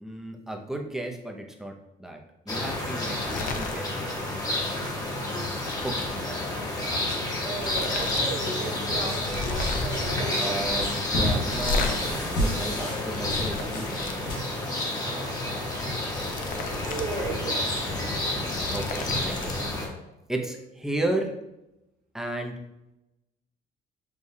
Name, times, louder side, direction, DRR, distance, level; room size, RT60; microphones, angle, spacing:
voice 1, 0.0-1.7 2.0-2.2 2.5-4.4 5.0-5.3 5.8-6.7 7.6-8.1 10.4-14.2 18.3-19.8 20.3-21.3 22.1-22.5, right 1 dB, 5° right, 1 dB, 0.5 m, -34 dB
sound 1, 2.5-19.9, left 1 dB, 20° left, 0.9 m, -30 dB
sound 2, 3.2-3.8 4.1-4.4 4.7-6.1 7.0-7.1 7.5-8.2 8.5-8.6 9.2-10.0 11.5-11.9 12.7-14.2 15.8-17.1 17.4-17.5 18.2-19.5, left 4 dB, 55° left, 0.5 m, -34 dB
voice 2, 7.4-10.9 12.8-12.9 13.6-13.7 15.0-15.4 16.0-17.8 20.4-20.5, right 3 dB, 60° right, -2 dB, 1.2 m, -36 dB
sound 3, 8.9-14.9, equal, 90° left, 1.2 m, -33 dB
6.4 x 2.3 x 2.7 m, 0.92 s
cardioid pair, 110°, 17 cm